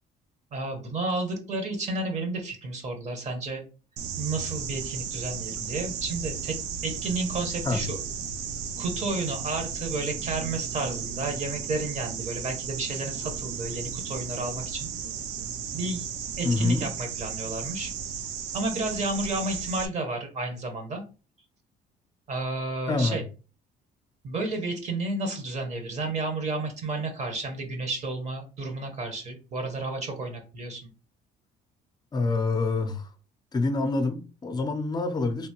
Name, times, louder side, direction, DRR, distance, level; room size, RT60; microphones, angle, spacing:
voice 1, 0.5-3.6 4.2-6.6 6.8-8.0 8.8-14.9 15.7-16.0 16.4-17.9 18.5-21.0 22.3-23.2 24.2-30.9, right 2 dB, 45° right, 1.1 m, -31 dB
sound 1, 4.0-19.9, right 7 dB, 90° right, 0.5 m, -35 dB
voice 2, 16.4-16.9 22.9-23.2 32.1-33.1 33.5-35.5, left 3 dB, 25° left, 0.6 m, -26 dB
3.4 x 2.8 x 2.9 m
cardioid pair, 110°, 17 cm